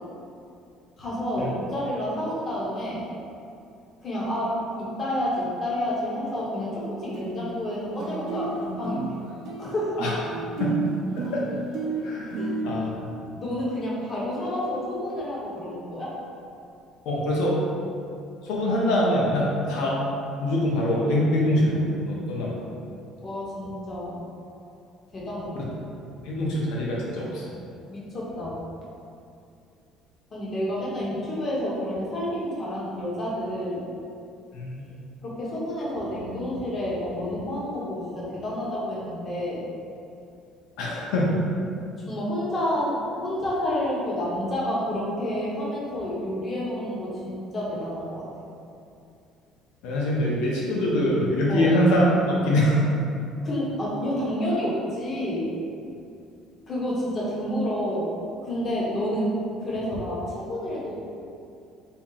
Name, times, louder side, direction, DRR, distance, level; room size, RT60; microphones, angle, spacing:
voice 1, 1.0-3.0 4.0-9.2 9.6-10.0 12.4-12.5 13.1-16.2 23.2-24.2 25.1-25.7 27.9-28.6 30.3-33.9 35.2-39.6 42.1-48.5 51.5-51.7 53.4-55.5 56.7-58.1 58.4-61.0, equal, 30° left, -6 dB, 0.8 m, -29 dB
sound 1, 6.8-6.9 7.1-7.7 8.0-12.7, right 4 dB, 55° right, 0.5 m, -31 dB
voice 2, 12.0-12.4 12.6-12.9 17.1-17.5 18.4-20.0 20.4-22.6 26.2-27.4 34.5-34.9 40.8-41.4 49.8-52.8, left 1 dB, 80° left, -4 dB, 0.6 m, -23 dB
4.3 x 2.0 x 3.7 m, 2.5 s
cardioid pair, 165°, 0 cm